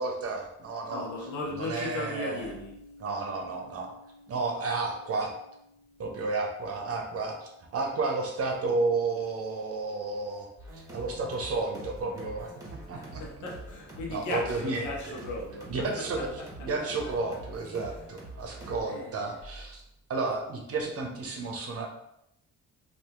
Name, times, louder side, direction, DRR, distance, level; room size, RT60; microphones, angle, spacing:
voice 1, 0.0-1.1 1.6-2.5 3.0-3.9 4.3-5.3 6.0-12.5 12.9-13.2 14.1-15.1 15.7-16.3 16.6-19.8 20.1-21.9, right 3 dB, 50° right, 1 dB, 0.8 m, -32 dB
voice 2, 0.9-2.7 12.9-16.9 18.5-19.3, left 2 dB, 75° left, -1 dB, 0.9 m, -37 dB
sound 1, 0.9-8.7, left 2 dB, 55° left, 1.1 m, -51 dB
sound 2, 10.6-18.8, right 1 dB, 10° right, 1.3 m, -45 dB
2.8 x 2.6 x 3.6 m, 0.81 s
cardioid pair, 90°, 30 cm